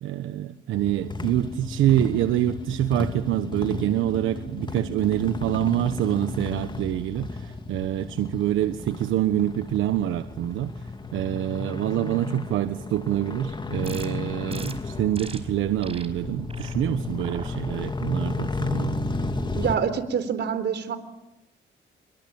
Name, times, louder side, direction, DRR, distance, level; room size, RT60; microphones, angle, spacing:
voice 1, 0.0-19.0, right 13 dB, 85° right, 10 dB, 1.2 m, -26 dB
sound 1, 0.7-19.8, left 3 dB, 25° left, 2.8 m, -33 dB
sound 2, 1.2-6.2, equal, 40° left, 5.8 m, -42 dB
sound 3, 13.8-14.1 14.5-14.7 15.1-15.4 15.8-16.1 16.5-16.7 17.2-17.5 18.0-18.4, right 4 dB, 30° right, 5.0 m, -41 dB
voice 2, 19.5-21.0, right 7 dB, 60° right, 12 dB, 4.0 m, -26 dB
28.0 x 23.0 x 8.8 m, 0.87 s
cardioid pair, 90°, 20 cm